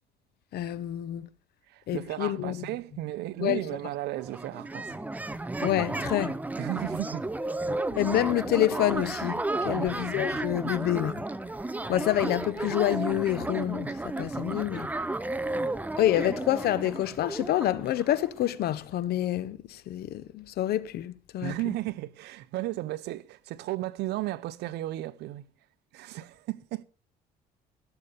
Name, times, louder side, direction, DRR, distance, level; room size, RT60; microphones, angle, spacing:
voice 1, 0.5-1.3 1.9-2.6 3.4-3.6 5.6-6.4 7.9-11.2 11.9-14.9 16.0-21.5, left 13 dB, 70° left, 1.0 m, -27 dB
voice 2, 1.7-5.0 6.6-7.3 9.6-10.0 21.4-25.4 25.9-26.8, right 16 dB, 80° right, 0.8 m, -34 dB
sound 1, 4.1-18.7, right 2 dB, 10° right, 0.7 m, -33 dB
16.5 x 7.0 x 6.8 m
cardioid pair, 110°, 17 cm